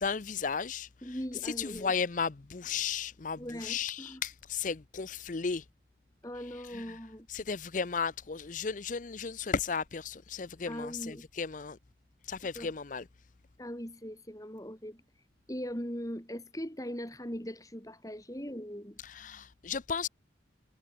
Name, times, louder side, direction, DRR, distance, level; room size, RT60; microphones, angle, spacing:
voice 1, 0.0-5.6 6.5-7.0 7.3-11.8 12.3-13.0 19.0-20.1, left 5 dB, 45° left, 0.6 m, -35 dB
voice 2, 1.0-1.9 3.4-4.2 6.2-7.3 10.6-11.3 12.5-12.7 13.6-15.0 15.5-19.0, equal, 20° left, 6.4 m, -40 dB
head